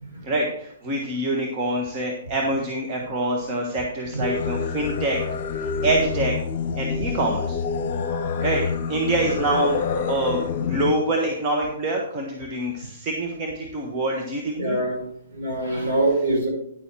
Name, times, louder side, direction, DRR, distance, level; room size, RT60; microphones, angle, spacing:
voice 1, 0.2-5.2 5.8-6.3 6.7-7.6 8.4-14.8, right 2 dB, 30° right, 0 dB, 1.3 m, -25 dB
Singing, 4.2-10.9, left 5 dB, 45° left, 0.9 m, -27 dB
voice 2, 14.6-15.0 15.3-16.5, right 1 dB, 55° right, -2 dB, 4.5 m, -24 dB
10.5 x 6.9 x 4.5 m, 0.72 s
figure-of-eight pair, 120°, 0 cm